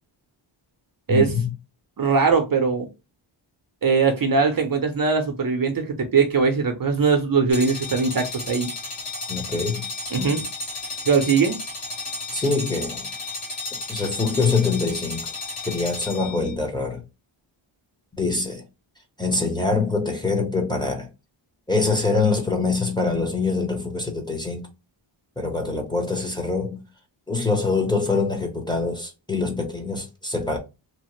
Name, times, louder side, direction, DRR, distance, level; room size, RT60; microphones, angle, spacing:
voice 1, 1.1-1.5 9.3-9.8 12.3-13.1 13.9-15.2 15.7-17.0 18.2-18.6 19.2-21.1 21.7-24.6 25.4-26.8 27.3-30.6, left 4 dB, 10° left, 0.8 m, -24 dB
voice 2, 2.0-2.9 3.8-8.7 10.1-10.4 11.0-11.6, right 5 dB, 45° right, 0.6 m, -21 dB
sound 1, 7.5-16.5, left 2 dB, 85° left, 1.4 m, -33 dB
2.9 x 2.0 x 3.0 m
wide cardioid pair, 95°, 50 cm